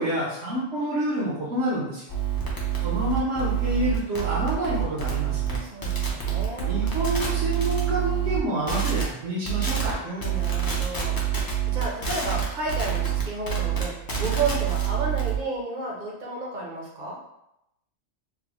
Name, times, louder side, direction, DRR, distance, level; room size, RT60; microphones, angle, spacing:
voice 1, 0.0-2.0 2.8-5.6 6.7-10.0, right 1 dB, 70° right, -8 dB, 1.1 m, -28 dB
sound 1, 2.1-8.4 8.7-9.0 9.5-9.9 10.2-15.4, right 9 dB, 25° left, 0.5 m, -27 dB
voice 2, 5.6-6.8 10.0-17.2, right 2 dB, 45° right, -2 dB, 0.8 m, -32 dB
3.8 x 2.1 x 2.9 m, 0.84 s
omnidirectional pair, 1.2 m